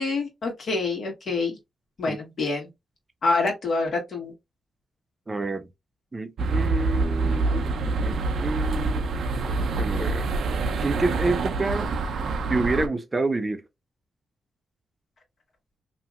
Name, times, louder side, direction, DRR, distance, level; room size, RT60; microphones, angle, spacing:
voice 1, 0.0-1.6 2.0-2.7 3.2-4.3, left 3 dB, 70° left, 1.5 m, -26 dB
voice 2, 5.3-5.7 6.1-9.1 9.6-10.3 10.8-11.9 12.5-13.6, right 3 dB, 30° right, 0.6 m, -28 dB
sound 1, 6.4-12.9, right 3 dB, 80° right, 0.5 m, -26 dB
2.8 x 2.6 x 2.4 m
cardioid pair, 65°, 0 cm